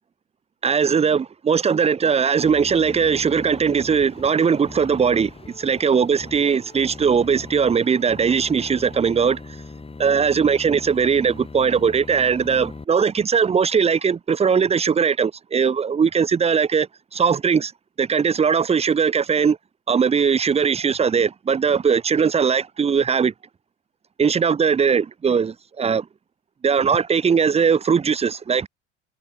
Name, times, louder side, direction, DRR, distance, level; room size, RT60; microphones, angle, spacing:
voice 1, 0.6-9.4 10.0-17.7 18.0-19.6 19.9-23.3 24.2-26.1 26.6-28.7, right 6 dB, 15° right, 0.8 m, -20 dB
sound 1, 2.4-12.8, left 3 dB, 15° left, 6.3 m, -40 dB
figure-of-eight pair, 70°, 35 cm